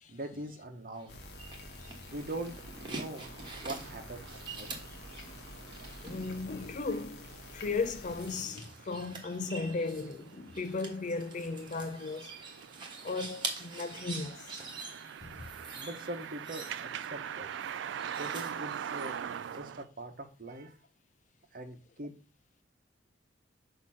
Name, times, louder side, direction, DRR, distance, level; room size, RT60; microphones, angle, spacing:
voice 1, 0.1-1.2 2.1-2.5 2.8-3.3 3.6-4.8 15.8-17.5 18.1-20.7 21.5-22.1, right 1 dB, 50° right, 1.1 m, -42 dB
sound 1, 0.9-19.6, right 3 dB, 25° right, 1.4 m, -46 dB
sound 2, 1.1-8.5, left 2 dB, 60° left, 1.2 m, -48 dB
sound 3, 2.1-19.8, right 8 dB, 70° right, 0.3 m, -44 dB
voice 2, 6.0-12.3 13.0-14.6 15.2-15.5, left 3 dB, 40° left, 0.5 m, -36 dB
6.4 x 2.9 x 5.7 m
head